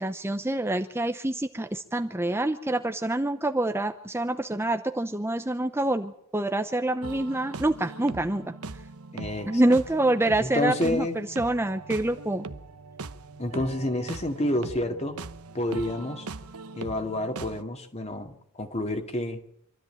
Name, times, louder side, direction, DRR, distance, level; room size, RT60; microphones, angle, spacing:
voice 1, 0.0-8.5 9.5-12.5, right 1 dB, 10° right, 7 dB, 0.8 m, -26 dB
sound 1, 7.0-17.6, right 3 dB, 85° right, 1.0 m, -40 dB
voice 2, 9.1-9.6 10.4-11.2 13.4-15.2 15.5-16.3 16.8-19.4, left 1 dB, 30° left, 6 dB, 2.2 m, -29 dB
26.0 x 13.5 x 8.9 m, 0.73 s
head